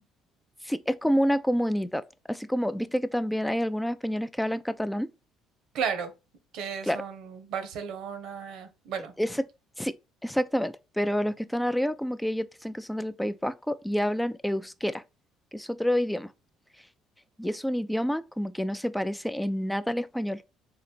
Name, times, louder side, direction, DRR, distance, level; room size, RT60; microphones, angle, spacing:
voice 1, 0.6-5.1 6.8-7.0 9.2-9.4 9.8-10.0 10.2-15.0 15.5-16.3 17.4-20.4, equal, 5° left, 0.4 m, -28 dB
voice 2, 5.7-6.1 6.5-9.1, right 7 dB, 70° right, 0.9 m, -34 dB
3.9 x 2.5 x 4.3 m
hypercardioid pair, 60°, 0 cm